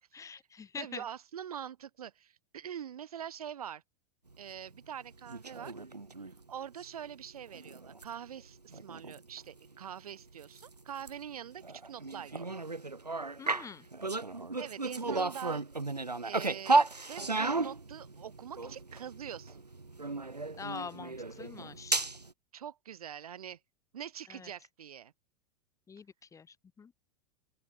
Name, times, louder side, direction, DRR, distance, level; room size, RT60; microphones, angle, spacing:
voice 1, 0.1-1.0 13.4-13.9 20.6-22.0 24.3-24.5 25.9-26.9, left 6 dB, 15° left, 1.7 m, -45 dB
voice 2, 0.8-3.8 4.4-5.7 6.5-12.6 14.6-15.6 16.2-19.6 22.5-23.6 23.9-25.1, right 9 dB, 65° right, 2.8 m, -44 dB
sound 1, 5.2-6.4 6.8-7.1 7.4-9.7 9.9-10.0 10.4-22.3, right 3 dB, 85° right, 2.5 m, -34 dB
open air
figure-of-eight pair, 90°, 20 cm